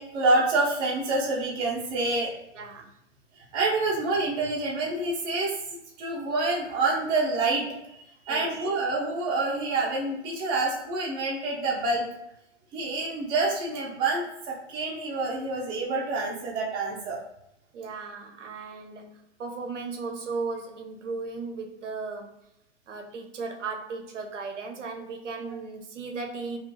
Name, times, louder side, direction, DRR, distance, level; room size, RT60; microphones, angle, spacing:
voice 1, 0.0-2.3 3.4-5.5 6.0-7.6 8.0-12.0 12.7-17.2 25.5-25.6, right 2 dB, 15° right, -3 dB, 0.3 m, -27 dB
voice 2, 2.5-2.9 8.3-8.5 17.7-22.3 22.9-26.6, right 4 dB, 90° right, 4 dB, 0.5 m, -36 dB
2.4 x 2.3 x 2.6 m, 0.84 s
figure-of-eight pair, 105°, 35 cm